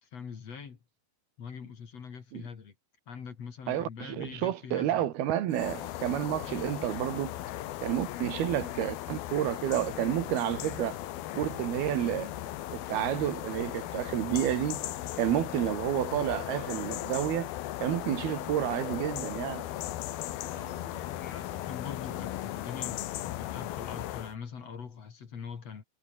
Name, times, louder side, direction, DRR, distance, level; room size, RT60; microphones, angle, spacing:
voice 1, 0.0-0.8 1.4-2.7 3.1-5.0 20.5-25.8, left 6 dB, 45° left, 3.4 m, -43 dB
voice 2, 3.7-7.3 7.8-11.0 11.4-12.3 12.7-14.9 15.2-17.5 17.8-19.7, right 12 dB, 80° right, 3.5 m, -30 dB
sound 1, 5.5-24.4, left 14 dB, 75° left, 3.0 m, -37 dB
omnidirectional pair, 4.5 m